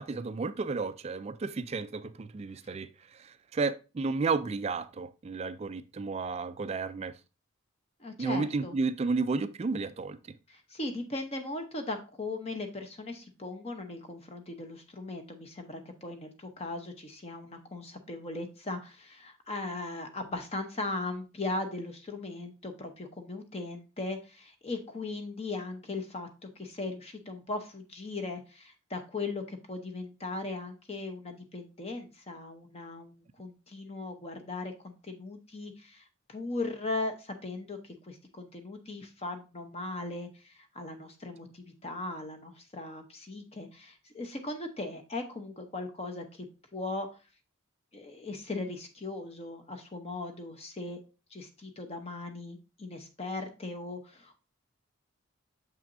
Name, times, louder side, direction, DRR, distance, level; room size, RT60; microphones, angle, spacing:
voice 1, 0.0-7.2 8.2-10.4, right 4 dB, 30° right, 0.3 m, -32 dB
voice 2, 8.0-8.7 10.5-46.5 46.7-47.1 47.9-51.0 51.3-54.4, left 2 dB, 30° left, 0.8 m, -38 dB
6.9 x 5.9 x 2.6 m
head